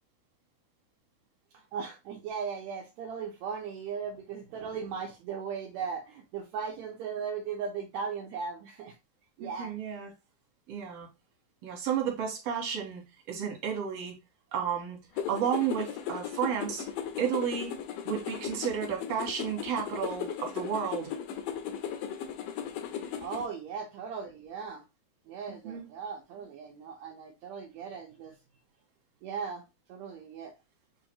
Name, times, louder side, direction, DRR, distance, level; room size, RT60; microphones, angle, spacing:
voice 1, 1.5-8.9 9.4-9.7 23.2-24.8 25.3-28.3 29.2-29.6 29.9-30.5, right 6 dB, 75° right, 1.8 m, -37 dB
voice 2, 9.4-10.1 10.7-11.1 11.6-13.0 13.3-14.1 14.5-15.0 15.3-16.8 17.2-17.8 18.0-21.1 25.6-25.9, right 8 dB, 60° right, 2.2 m, -32 dB
sound 1, 15.2-23.5, left 8 dB, 85° left, 2.2 m, -37 dB
7.1 x 2.5 x 2.8 m
omnidirectional pair, 3.8 m